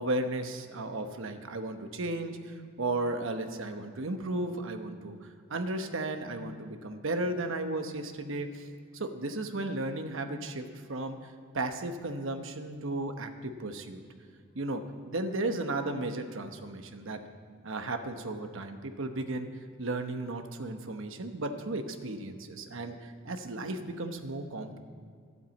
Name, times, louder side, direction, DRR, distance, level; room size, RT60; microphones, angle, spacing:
voice 1, 0.0-8.7 8.9-14.0 14.5-17.2 17.6-19.5 19.8-24.8, right 2 dB, 70° right, 6 dB, 1.0 m, -35 dB
12.0 x 8.2 x 8.3 m, 2.1 s
head